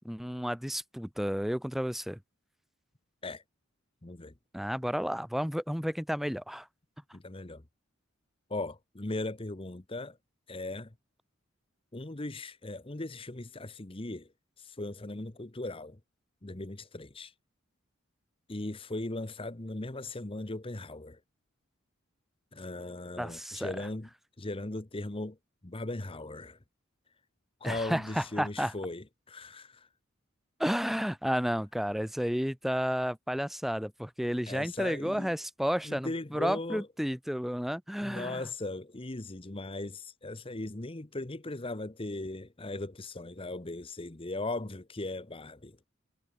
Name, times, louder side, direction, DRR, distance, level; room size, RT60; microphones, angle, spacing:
voice 1, 0.0-2.2 4.5-6.7 23.2-23.7 27.6-28.7 30.6-38.4, equal, ahead, 0.8 m, -32 dB
voice 2, 4.0-4.3 7.1-7.6 8.5-10.2 10.5-10.9 11.9-14.3 14.6-16.0 16.4-17.3 18.5-21.2 22.5-24.1 24.4-25.4 25.6-26.6 27.6-29.9 34.5-35.3 35.8-36.9 38.0-45.8, left 2 dB, 25° left, 1.0 m, -38 dB
head